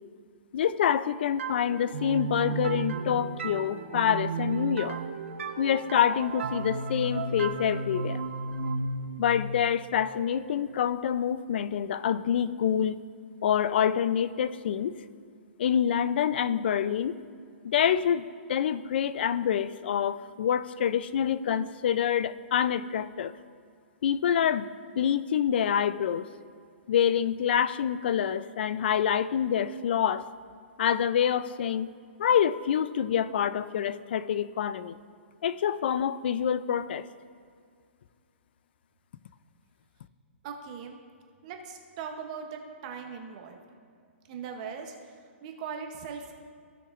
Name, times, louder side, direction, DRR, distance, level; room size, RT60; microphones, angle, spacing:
voice 1, 0.5-5.0 5.6-8.2 9.2-13.0 13.4-15.0 15.6-17.2 17.6-23.3 24.0-26.3 26.9-30.3 30.8-31.9 32.2-35.0 35.4-37.1, left 9 dB, 50° left, 15 dB, 0.4 m, -26 dB
sound 1, 1.4-10.9, right 4 dB, 75° right, 0.8 m, -34 dB
voice 2, 40.4-41.0 41.4-43.6 44.3-44.9 45.4-46.3, right 6 dB, 30° right, 4 dB, 0.8 m, -39 dB
16.5 x 5.9 x 2.5 m, 2.2 s
hypercardioid pair, 160°, 7 cm